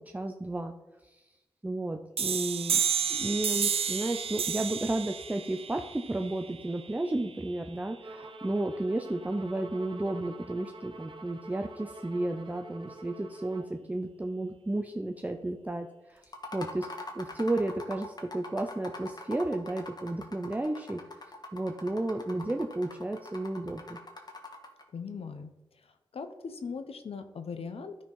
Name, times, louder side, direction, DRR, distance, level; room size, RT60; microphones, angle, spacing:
voice 1, 0.1-0.7 1.0-1.2 1.6-2.8 3.1-16.2 16.5-16.9 17.1-21.0 21.5-24.0, right 2 dB, 15° right, 4 dB, 0.6 m, -32 dB
sound 1, 2.2-7.6, right 7 dB, 85° right, 0.6 m, -32 dB
Bowed string instrument, 8.0-13.8, right 2 dB, 55° right, 1.2 m, -47 dB
sound 2, 16.2-24.8, left 2 dB, 45° left, 1.6 m, -44 dB
voice 2, 24.9-25.5 25.8-28.0, left 5 dB, 80° left, 8 dB, 0.9 m, -39 dB
13.0 x 4.4 x 5.5 m, 1.0 s
wide cardioid pair, 80°, 10 cm